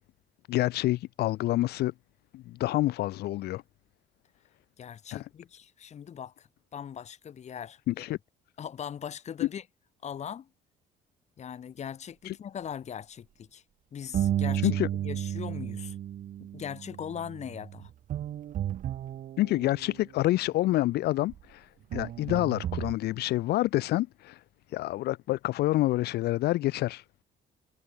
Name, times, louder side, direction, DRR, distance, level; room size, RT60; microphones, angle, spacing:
voice 1, 0.5-1.9 2.3-3.6 5.1-5.3 7.9-8.2 12.3-12.4 14.6-14.9 19.4-21.7 21.9-24.4 24.7-27.0, left 16 dB, 70° left, 0.7 m, -27 dB
voice 2, 4.8-8.1 8.6-9.6 10.0-10.5 11.4-13.6 13.9-16.0 16.4-17.9, left 8 dB, 40° left, 1.3 m, -40 dB
sound 1, 14.1-20.1 21.3-21.4 21.9-22.9, right 11 dB, 50° right, 0.7 m, -33 dB
cardioid pair, 110°, 17 cm